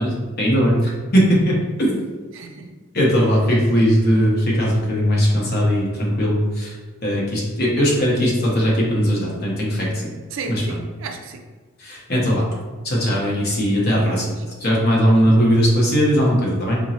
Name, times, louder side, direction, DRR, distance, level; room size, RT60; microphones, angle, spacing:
voice 1, 0.0-2.0 2.9-6.7 7.0-10.1 10.5-10.8 11.8-12.4 12.8-16.8, equal, 45° left, -3 dB, 0.8 m, -19 dB
voice 2, 2.3-2.8 5.9-6.1 7.9-8.1 10.3-11.4 13.4-13.6 13.9-14.5 15.0-15.2, right 4 dB, 60° right, 4 dB, 0.4 m, -35 dB
3.6 x 2.9 x 2.8 m, 1.4 s
head